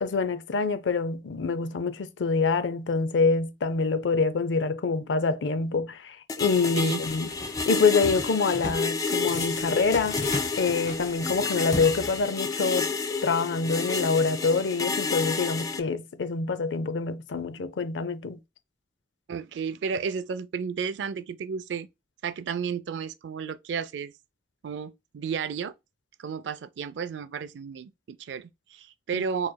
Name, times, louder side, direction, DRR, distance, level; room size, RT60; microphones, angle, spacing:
voice 1, 0.0-7.3 7.7-10.2 10.6-12.9 13.2-18.4 29.1-29.2, left 4 dB, 80° left, 0.5 m, -26 dB
sound 1, 6.3-15.8, left 4 dB, 20° left, 0.3 m, -30 dB
sound 2, 7.1-7.7 8.0-8.9 9.3-12.5, left 2 dB, 40° left, 0.9 m, -36 dB
voice 2, 19.3-21.9 22.2-24.1 24.6-25.7 26.2-29.5, right 6 dB, 70° right, 0.4 m, -32 dB
4.6 x 3.1 x 2.2 m
head